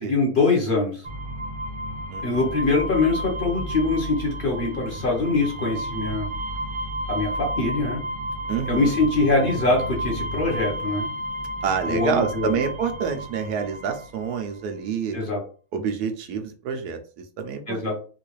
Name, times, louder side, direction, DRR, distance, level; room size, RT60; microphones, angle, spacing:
voice 1, 0.0-1.1 2.2-6.3 7.1-8.0 8.7-11.1 11.9-12.6 15.1-15.4 17.7-18.0, left 3 dB, 40° left, -1 dB, 0.9 m, -23 dB
sound 1, 1.0-14.5, equal, 35° right, 0.5 m, -32 dB
voice 2, 2.1-2.5 8.5-9.0 11.6-15.2 15.7-17.8, right 6 dB, 90° right, 6 dB, 1.2 m, -28 dB
3.7 x 2.4 x 3.1 m, 0.39 s
omnidirectional pair, 1.6 m